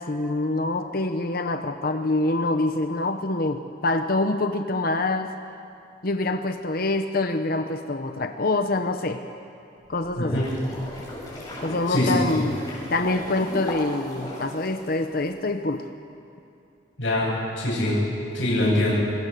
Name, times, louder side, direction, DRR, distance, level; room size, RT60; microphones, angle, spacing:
voice 1, 0.0-5.3 6.0-9.2 9.9-10.5 11.6-12.6 12.9-15.9, left 2 dB, 50° left, 7 dB, 1.0 m, -25 dB
sound 1, 9.9-15.3, left 1 dB, 20° left, 7.0 m, -36 dB
voice 2, 17.0-18.0 18.3-18.9, left 1 dB, 80° left, -9 dB, 7.9 m, -23 dB
27.5 x 22.5 x 6.8 m, 2.6 s
head